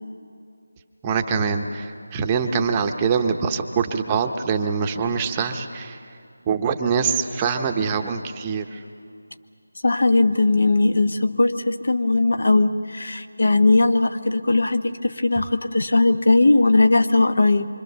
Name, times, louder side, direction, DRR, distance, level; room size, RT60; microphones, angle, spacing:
voice 1, 1.0-6.0 6.5-8.8, right 6 dB, 15° right, 5 dB, 0.9 m, -24 dB
voice 2, 9.8-17.7, left 2 dB, 65° left, 8 dB, 1.3 m, -19 dB
26.0 x 25.0 x 6.9 m, 2.5 s
figure-of-eight pair, 165°, 0 cm